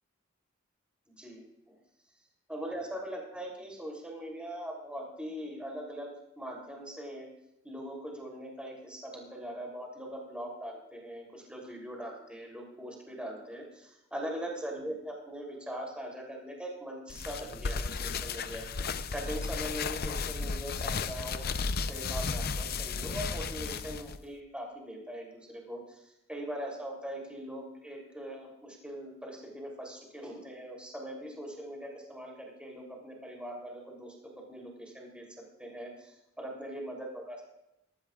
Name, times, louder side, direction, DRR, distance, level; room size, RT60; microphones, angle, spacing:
voice 1, 1.1-1.7 2.5-7.3 7.6-18.7 19.1-26.0 26.3-37.4, equal, 5° right, -1 dB, 3.2 m, -41 dB
sound 1, 17.1-24.2, left 4 dB, 50° left, 0.6 m, -34 dB
20.5 x 14.0 x 2.4 m, 0.82 s
head